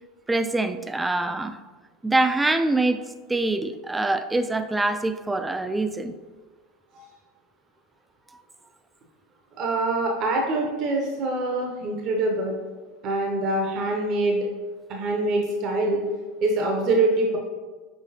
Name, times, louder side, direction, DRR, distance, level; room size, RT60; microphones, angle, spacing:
voice 1, 0.3-1.6 2.0-3.0 3.3-6.1, right 2 dB, 10° right, 9 dB, 0.3 m, -24 dB
voice 2, 9.6-12.6 13.0-14.5 14.9-16.1 16.4-17.4, right 2 dB, 50° right, 1 dB, 0.6 m, -24 dB
5.7 x 3.1 x 2.7 m, 1.3 s
supercardioid pair, 105°, 0 cm